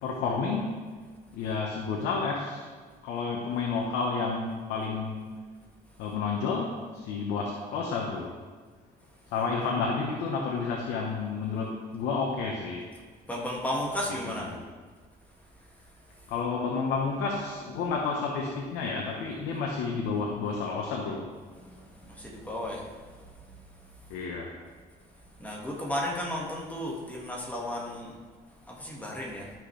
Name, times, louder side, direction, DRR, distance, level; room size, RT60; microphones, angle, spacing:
voice 1, 0.0-0.7 1.3-2.6 3.0-5.4 6.0-8.3 9.3-12.9 14.1-14.6 16.3-21.3 24.1-24.5, left 4 dB, 90° left, -1 dB, 1.2 m, -30 dB
voice 2, 9.4-9.7 13.3-14.5 21.6-23.1 23.4-23.6 25.4-28.2 28.7-29.5, left 1 dB, 10° left, -2 dB, 1.9 m, -34 dB
12.5 x 6.0 x 3.4 m, 1.5 s
cardioid pair, 110°, 17 cm